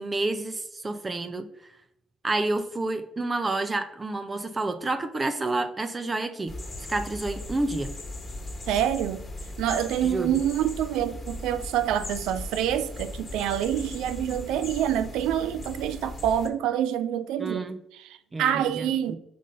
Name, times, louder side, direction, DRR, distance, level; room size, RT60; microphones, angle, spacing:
voice 1, 0.0-1.5 2.2-6.5 6.9-7.9 10.0-10.3 17.4-17.8 18.3-19.2, right 2 dB, 25° right, 0.7 m, -29 dB
sound 1, 6.5-16.5, left 1 dB, 30° left, 1.6 m, -38 dB
voice 2, 8.7-9.3 9.6-19.2, right 10 dB, 70° right, 0.4 m, -27 dB
5.1 x 3.8 x 5.5 m
hypercardioid pair, 45°, 0 cm